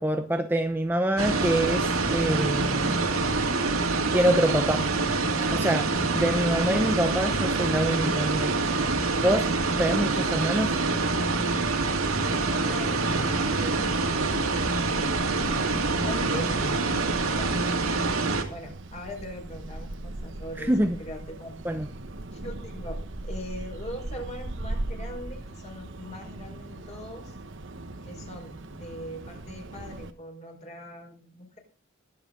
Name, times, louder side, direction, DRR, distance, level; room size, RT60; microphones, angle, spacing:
voice 1, 0.0-3.0 4.1-4.9 5.5-8.6 9.2-9.5 9.8-10.8 20.6-21.0 21.6-21.9, right 1 dB, 10° right, 0.6 m, -25 dB
sound 1, 1.2-18.4, right 3 dB, 80° right, 2.4 m, -26 dB
sound 2, 12.0-30.1, right 2 dB, 55° right, 1.2 m, -40 dB
voice 2, 12.6-14.3 15.0-16.8 17.2-17.6 18.5-21.6 22.3-23.0 23.2-27.3 28.0-31.6, equal, 30° left, 4.8 m, -41 dB
22.0 x 7.9 x 3.8 m
head